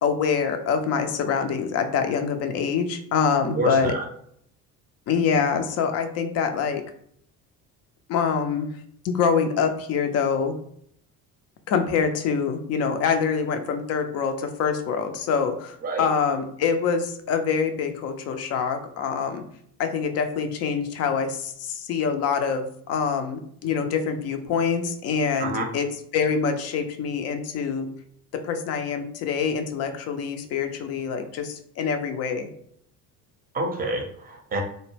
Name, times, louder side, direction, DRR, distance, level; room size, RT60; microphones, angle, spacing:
voice 1, 0.0-3.9 5.1-6.8 8.1-8.7 9.0-10.5 11.7-19.4 19.8-25.9 26.1-27.9 28.4-32.5, left 6 dB, 35° left, 7 dB, 0.4 m, -25 dB
voice 2, 3.6-4.0 15.8-16.1 25.4-25.7 33.5-34.6, right 1 dB, 20° right, 2 dB, 0.6 m, -27 dB
2.2 x 2.0 x 3.2 m, 0.67 s
figure-of-eight pair, 60°, 47 cm